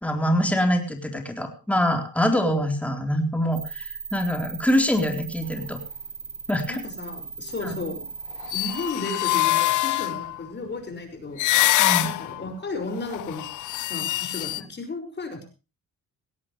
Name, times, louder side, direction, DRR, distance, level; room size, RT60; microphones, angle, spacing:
voice 1, 0.0-5.8 6.5-6.8 7.6-7.7 11.8-12.1, equal, 5° left, 4 dB, 3.8 m, -24 dB
sound 1, 3.5-8.9, right 6 dB, 50° right, 5.0 m, -38 dB
voice 2, 6.7-8.1 8.5-11.7 12.0-13.5 13.8-15.4, left 3 dB, 35° left, 6 dB, 5.7 m, -34 dB
sound 2, 8.3-10.4 11.4-12.5 12.9-14.6, left 16 dB, 85° left, 0.9 m, -24 dB
18.0 x 17.0 x 3.2 m, 0.31 s
cardioid pair, 90°, 30 cm